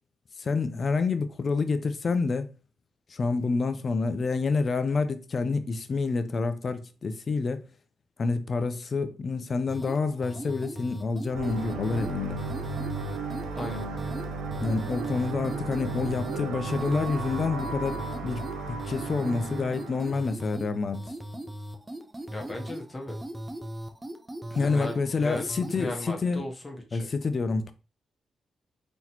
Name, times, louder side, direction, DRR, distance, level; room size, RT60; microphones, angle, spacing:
voice 1, 0.4-2.5 3.1-7.6 8.2-12.4 14.6-21.0 24.5-26.5 26.9-27.7, left 4 dB, 50° left, 0.5 m, -28 dB
sound 1, 9.7-25.9, right 1 dB, 20° right, 0.6 m, -39 dB
sound 2, 11.3-20.3, right 4 dB, 80° right, 0.6 m, -35 dB
voice 2, 13.5-13.8 22.3-23.2 24.6-25.4 25.7-27.1, left 1 dB, 30° left, 1.1 m, -36 dB
3.9 x 3.0 x 2.9 m
supercardioid pair, 50°, 0 cm